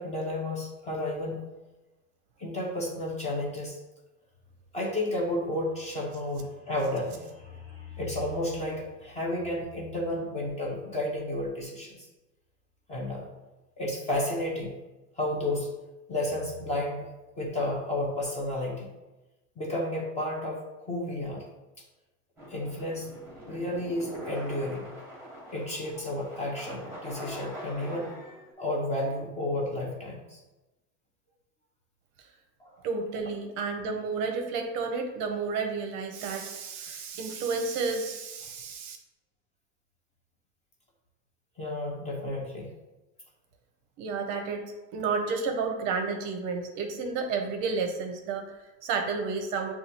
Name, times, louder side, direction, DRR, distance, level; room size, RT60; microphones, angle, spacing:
voice 1, 0.0-1.4 2.4-3.8 4.7-12.0 12.9-13.3 13.8-14.7 15.2-15.7 16.1-17.1 17.4-18.9 19.6-21.5 22.5-23.1 23.5-24.9 25.5-28.1 28.6-30.4 32.6-32.7 41.6-42.7, left 1 dB, 15° left, -2 dB, 0.5 m, -32 dB
sound 1, 22.4-28.5, equal, 5° right, 1.0 m, -43 dB
voice 2, 32.8-39.0 44.0-49.7, right 4 dB, 45° right, 4 dB, 0.6 m, -31 dB
6.6 x 2.3 x 2.9 m, 1.1 s
supercardioid pair, 145°, 42 cm